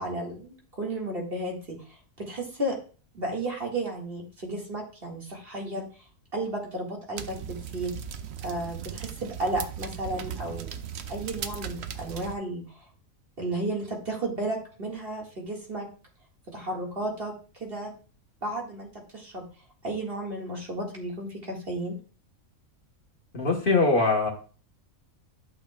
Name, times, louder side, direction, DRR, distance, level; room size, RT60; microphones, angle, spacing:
voice 1, 0.0-2.8 3.1-5.9 6.3-7.9 8.4-10.8 11.1-12.8 13.4-15.9 16.5-17.3 17.6-17.9 18.4-19.4 19.8-22.0, right 1 dB, 45° right, -1 dB, 2.1 m, -33 dB
sound 1, 7.2-12.4, right 8 dB, 60° right, 0.8 m, -37 dB
voice 2, 23.3-24.3, left 3 dB, 40° left, 0 dB, 1.4 m, -22 dB
12.0 x 6.4 x 2.3 m, 0.38 s
omnidirectional pair, 1.4 m